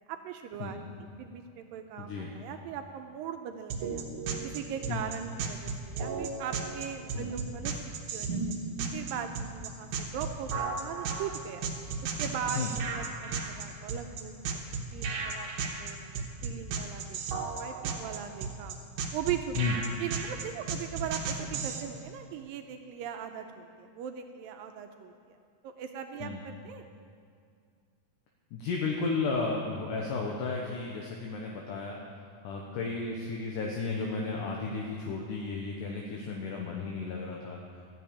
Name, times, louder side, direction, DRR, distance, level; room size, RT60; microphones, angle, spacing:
voice 1, 0.1-4.1 4.4-8.4 8.9-11.6 12.0-18.8 19.1-19.6 20.0-25.4 25.6-26.8, right 8 dB, 80° right, 5 dB, 2.2 m, -40 dB
voice 2, 2.0-2.3 4.9-5.0 7.2-7.3 12.6-12.7 19.6-19.8 26.2-26.4 28.5-32.0 32.4-37.6, left 4 dB, 70° left, -1 dB, 2.4 m, -33 dB
sound 1, 3.7-21.8, right 5 dB, 65° right, 2.4 m, -34 dB
13.5 x 7.6 x 8.6 m, 2.2 s
omnidirectional pair, 4.4 m